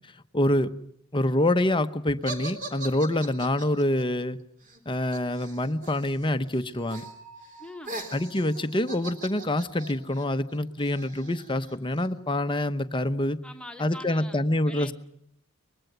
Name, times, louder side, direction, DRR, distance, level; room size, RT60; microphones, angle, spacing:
voice 1, 0.3-0.7 1.1-4.4 4.9-7.0 8.1-13.4 13.8-14.9, left 1 dB, 25° left, 10 dB, 0.9 m, -26 dB
sound 1, 2.2-6.3 6.5-7.1 7.4-12.1, right 2 dB, 40° right, 3.6 m, -41 dB
Bell, 6.8-10.4, right 3 dB, 15° right, 6.6 m, -52 dB
voice 2, 7.6-8.1 13.4-14.9, left 1 dB, 5° left, 5 dB, 1.6 m, -43 dB
24.0 x 20.5 x 7.9 m, 0.73 s
head